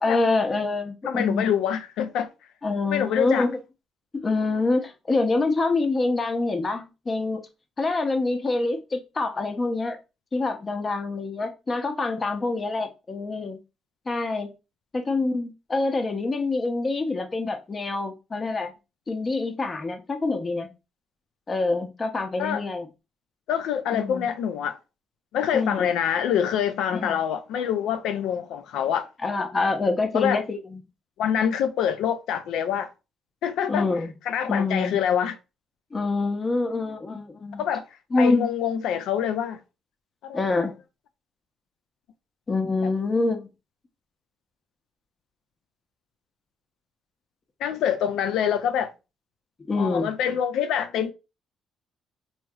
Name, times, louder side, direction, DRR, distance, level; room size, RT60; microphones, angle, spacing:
voice 1, 0.0-1.6 2.6-3.6 4.1-7.4 7.8-10.0 10.3-13.6 14.1-14.5 14.9-18.7 19.1-20.7 21.5-22.9 23.9-24.3 25.5-25.9 26.9-27.2 29.2-30.8 33.7-34.1 34.5-34.9 35.9-37.6 38.1-38.5 40.3-40.7 42.5-43.5 49.7-50.1, left 3 dB, 35° left, 0.7 m, -26 dB
voice 2, 1.0-2.3 2.9-3.5 22.4-22.6 23.5-24.8 25.3-29.1 30.1-30.4 31.2-32.9 33.4-33.9 34.3-35.4 37.6-37.8 38.2-39.6 40.2-40.4 47.6-48.9 49.8-51.1, left 8 dB, 80° left, 0.4 m, -25 dB
2.9 x 2.7 x 2.3 m
cardioid pair, 80°, 0 cm